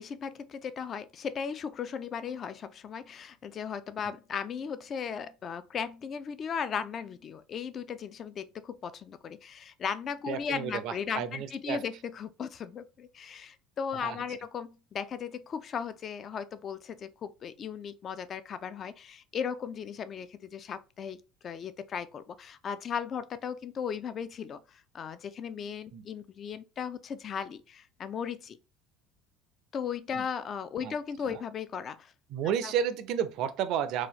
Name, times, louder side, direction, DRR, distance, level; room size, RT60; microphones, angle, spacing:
voice 1, 0.0-21.2 21.4-28.6 29.7-32.1 32.6-32.7, left 7 dB, 40° left, 0.4 m, -37 dB
voice 2, 10.3-11.8 14.0-14.2 25.9-26.1 30.1-30.3 30.8-30.9 31.3-31.4 32.3-34.1, right 8 dB, 55° right, 0.4 m, -32 dB
3.9 x 2.4 x 3.0 m
figure-of-eight pair, 65°, 0 cm